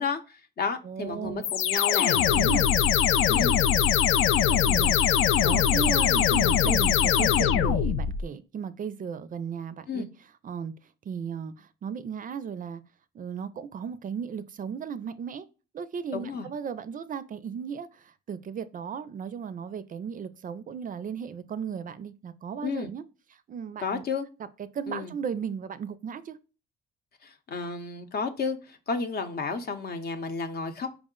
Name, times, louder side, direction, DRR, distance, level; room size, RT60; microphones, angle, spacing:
voice 1, 0.0-2.3 3.3-3.6 9.9-10.1 16.1-16.5 22.6-22.9 23.8-24.3 24.9-25.1 27.2-30.9, left 5 dB, 55° left, 0.7 m, -32 dB
voice 2, 0.8-1.5 2.2-2.6 4.5-10.1 10.4-10.7 11.1-12.8 13.1-15.5 15.7-23.0 23.5-24.0 24.6-26.4, right 7 dB, 45° right, 0.4 m, -35 dB
sound 1, 1.4-8.2, left 9 dB, 80° left, 0.4 m, -22 dB
4.7 x 2.1 x 3.6 m
cardioid pair, 90°, 20 cm